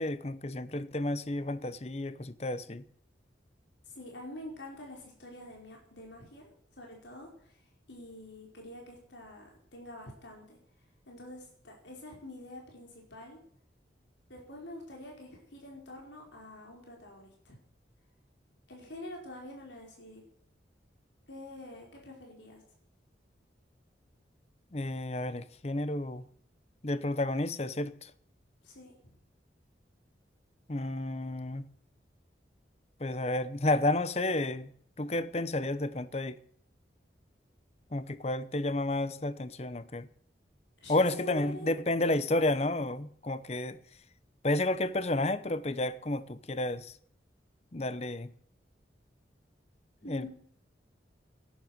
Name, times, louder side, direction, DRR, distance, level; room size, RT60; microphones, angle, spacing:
voice 1, 0.0-2.8 24.7-26.3 26.8-28.1 30.7-31.7 33.0-34.7 35.0-36.4 37.9-40.1 40.9-43.8 44.4-47.0 47.7-48.3 50.1-50.3, left 2 dB, 35° left, 0.8 m, -31 dB
voice 2, 3.8-7.6 7.9-10.6 11.1-13.4 14.3-17.6 18.7-20.2 21.3-22.6 28.6-29.2 40.8-41.7 50.0-50.3, left 1 dB, 85° left, 4.9 m, -46 dB
11.5 x 10.5 x 9.7 m
head